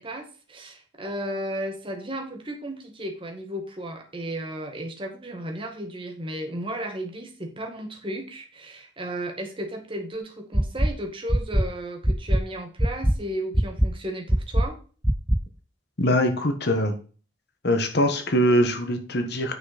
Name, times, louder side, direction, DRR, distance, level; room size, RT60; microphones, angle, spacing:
voice 1, 0.0-14.8, right 1 dB, 25° right, 3 dB, 1.8 m, -34 dB
sound 1, 10.5-10.9 11.3-11.6 12.0-12.4 12.8-13.1 13.5-13.9 14.3-14.6 15.0-15.4, right 1 dB, 5° right, 0.4 m, -20 dB
voice 2, 16.0-16.9 17.6-19.6, equal, 55° left, 7 dB, 1.4 m, -22 dB
9.2 x 6.0 x 4.2 m, 0.38 s
head